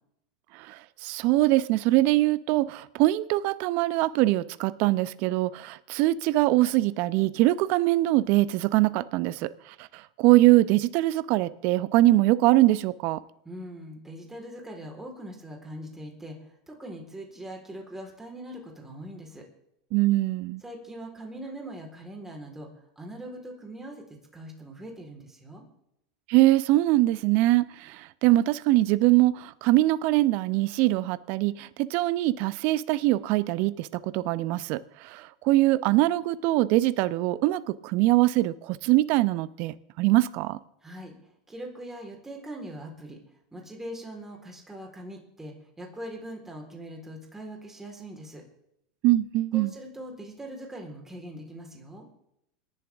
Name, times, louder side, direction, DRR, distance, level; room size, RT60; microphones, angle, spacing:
voice 1, 0.5-9.5 9.8-13.2 19.9-20.6 26.3-40.6 49.0-49.7, right 17 dB, 55° right, 0.7 m, -23 dB
voice 2, 13.4-19.4 20.6-22.7 23.0-25.6 40.8-41.1 41.5-43.2 43.5-48.4 49.5-52.1, right 1 dB, 10° right, 3.9 m, -41 dB
27.5 x 11.0 x 3.5 m
hypercardioid pair, 100°, 4 cm